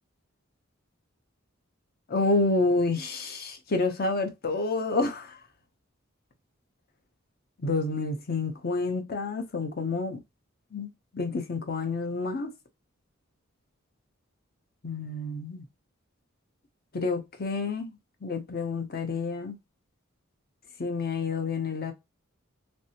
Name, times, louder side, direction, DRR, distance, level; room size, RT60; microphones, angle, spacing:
voice 1, 2.1-5.4 7.6-10.2 10.7-10.9 11.1-12.5 14.8-15.6 16.9-17.9 18.2-19.6 20.8-21.9, left 3 dB, 50° left, 0.7 m, -29 dB
3.2 x 2.7 x 2.8 m
head